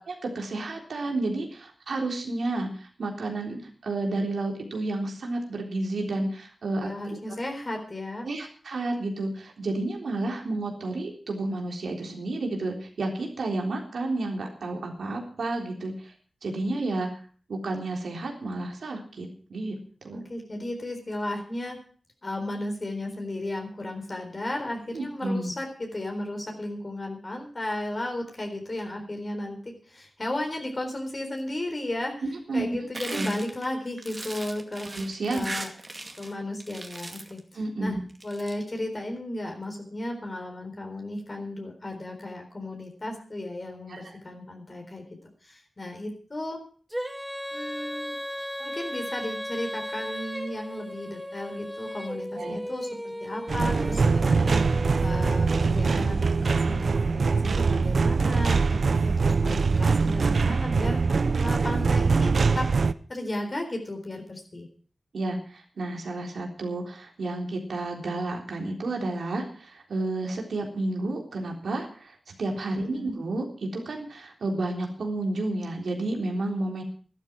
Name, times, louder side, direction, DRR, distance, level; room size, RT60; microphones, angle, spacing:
voice 1, 0.0-6.9 8.2-16.1 16.4-17.1 17.5-19.8 20.0-20.2 24.9-25.5 32.5-32.7 33.1-33.3 34.9-35.4 37.5-38.0 43.9-44.1 52.4-52.6 65.1-76.8, right 2 dB, 90° right, 1 dB, 3.7 m, -31 dB
voice 2, 6.8-8.3 20.1-21.8 22.2-32.1 32.5-34.9 35.3-35.7 36.2-37.4 37.8-38.0 38.2-45.0 45.4-46.6 47.5-48.1 48.6-62.7 63.1-64.7 72.9-73.2, left 1 dB, 40° left, 2 dB, 4.1 m, -34 dB
sound 1, 32.9-36.3 36.6-37.4 38.1-38.5, right 2 dB, 35° right, 2.4 m, -38 dB
Female singing, 46.9-55.7, equal, 10° right, 2.6 m, -36 dB
sound 2, 53.5-62.9, right 4 dB, 70° right, 0.6 m, -23 dB
12.5 x 12.5 x 6.2 m, 0.43 s
wide cardioid pair, 60°, 0 cm